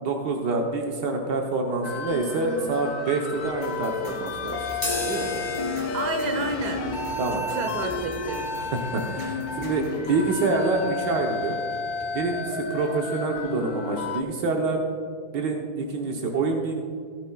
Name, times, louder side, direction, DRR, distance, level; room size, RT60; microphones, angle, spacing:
voice 1, 0.0-4.6 5.0-5.3 7.2-7.4 8.7-11.6 12.1-14.8 15.3-16.7, right 3 dB, 85° right, 1 dB, 1.6 m, -26 dB
sound 1, 1.8-14.2, left 4 dB, 65° left, 1.4 m, -32 dB
sound 2, 3.3-10.1, equal, 50° right, 3.4 m, -43 dB
sound 3, 4.7-12.5, equal, 20° left, 1.9 m, -37 dB
voice 2, 5.9-6.9 7.3-8.4, right 2 dB, 70° right, 5 dB, 1.8 m, -30 dB
16.0 x 13.0 x 2.3 m, 2.2 s
omnidirectional pair, 1.8 m